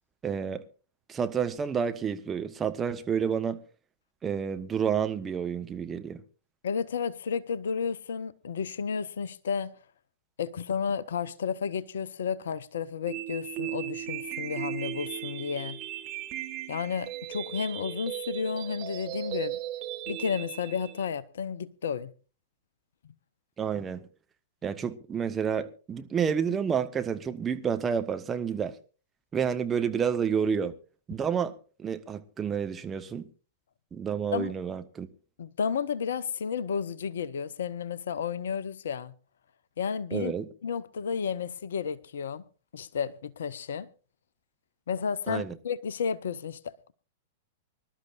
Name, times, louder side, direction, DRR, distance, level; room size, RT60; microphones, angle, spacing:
voice 1, 0.2-0.6 1.1-3.6 4.2-6.2 23.6-24.1 24.6-28.8 29.3-30.7 31.1-33.3 33.9-35.1 40.1-40.5 45.3-45.6, right 7 dB, 20° right, 1.1 m, -29 dB
voice 2, 6.6-9.7 10.4-15.8 16.7-19.6 20.1-22.1 34.3-34.5 35.4-39.1 39.8-40.3 40.6-42.4 42.7-43.9 44.9-46.9, left 6 dB, 65° left, 0.7 m, -32 dB
sound 1, 13.1-21.1, right 13 dB, 35° right, 1.9 m, -37 dB
25.0 x 12.0 x 2.5 m
figure-of-eight pair, 100°, 0 cm